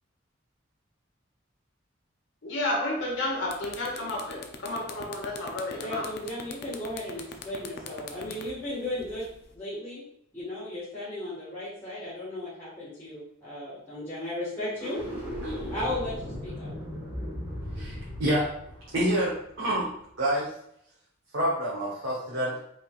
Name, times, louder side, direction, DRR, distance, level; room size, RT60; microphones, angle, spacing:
voice 1, 2.4-6.0, left 1 dB, 70° left, -3 dB, 1.1 m, -31 dB
sound 1, 3.0-3.1 3.4-9.5, left 5 dB, 55° left, 0.5 m, -41 dB
voice 2, 5.8-10.0 10.3-15.0 15.7-16.7, left 1 dB, 10° left, -12 dB, 1.6 m, -35 dB
sound 2, 14.7-20.0, equal, 10° right, 1.5 m, -37 dB
voice 3, 17.7-18.4 18.9-19.8 20.2-20.5 21.3-22.5, right 1 dB, 80° right, -7 dB, 1.4 m, -27 dB
5.4 x 3.9 x 2.4 m, 0.73 s
head